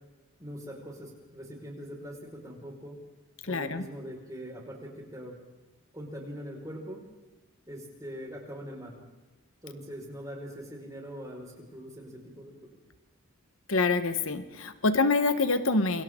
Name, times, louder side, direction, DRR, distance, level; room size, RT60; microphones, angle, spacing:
voice 1, 0.4-2.9 3.5-5.3 5.9-7.0 7.7-8.9 9.6-12.7, equal, 15° right, -1 dB, 5.0 m, -42 dB
voice 2, 3.4-3.9 13.7-16.0, left 3 dB, 70° left, 10 dB, 1.3 m, -26 dB
28.0 x 24.0 x 3.8 m, 1.2 s
head